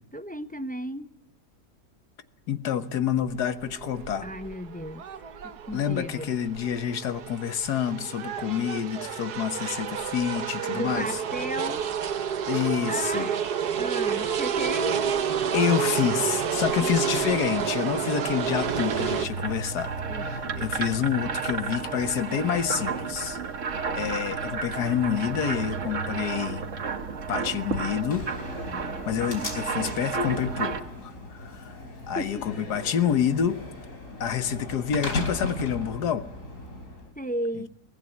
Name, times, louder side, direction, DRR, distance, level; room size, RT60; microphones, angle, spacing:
voice 1, 0.1-1.1 4.2-5.1 5.4-6.3 10.7-11.9 12.9-13.4 13.8-15.0 16.8-16.9 20.1-20.4 28.7-29.0 32.2-32.5 37.2-37.7, right 1 dB, 10° left, 10 dB, 0.5 m, -34 dB
voice 2, 2.5-4.3 5.7-11.1 12.5-13.3 15.5-19.9 20.2-23.4 24.0-26.7 27.3-28.3 29.1-30.7 31.0-31.7 32.1-33.6 34.2-36.3, left 8 dB, 80° left, 12 dB, 1.7 m, -28 dB
sound 1, 3.3-19.3, right 7 dB, 75° right, 1.7 m, -30 dB
sound 2, 18.5-30.8, right 5 dB, 50° right, 1.7 m, -32 dB
Slam, 28.1-37.1, left 2 dB, 50° left, 4.4 m, -37 dB
24.0 x 18.0 x 9.7 m, 0.81 s
omnidirectional pair, 1.7 m